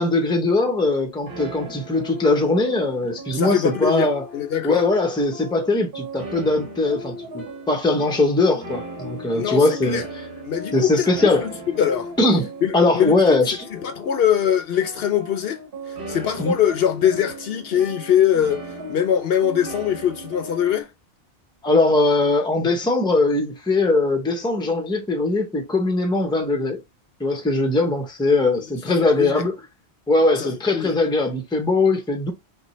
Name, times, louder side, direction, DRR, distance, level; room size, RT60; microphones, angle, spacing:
voice 1, 0.0-4.2 4.6-10.0 10.7-11.4 12.2-13.7 16.4-16.5 21.6-26.8 27.2-29.6 30.1-32.3, left 2 dB, 5° left, 0.6 m, -20 dB
sound 1, 1.3-20.8, right 1 dB, 55° right, 1.3 m, -37 dB
voice 2, 3.3-4.8 9.3-10.0 10.4-12.1 12.6-13.4 13.7-15.6 15.9-20.9 28.9-29.4 30.4-30.9, left 9 dB, 65° left, 0.8 m, -22 dB
5.5 x 2.3 x 3.1 m
omnidirectional pair, 1.1 m